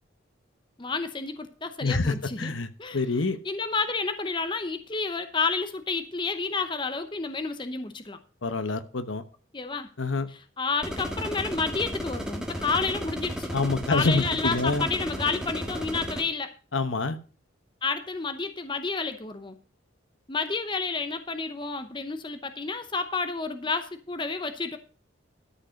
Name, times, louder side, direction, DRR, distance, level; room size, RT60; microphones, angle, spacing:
voice 1, 0.8-2.5 2.8-3.0 3.4-8.2 9.5-9.9 10.3-13.5 13.9-16.5 17.8-19.6 20.3-24.8, left 4 dB, 25° left, 9 dB, 0.8 m, -30 dB
voice 2, 1.8-2.7 2.9-3.4 8.4-9.2 10.0-10.3 13.5-14.9 16.7-17.2, left 3 dB, 75° left, 11 dB, 1.0 m, -26 dB
sound 1, 10.8-16.2, equal, 5° right, 1.5 m, -34 dB
13.0 x 5.4 x 6.4 m, 0.37 s
head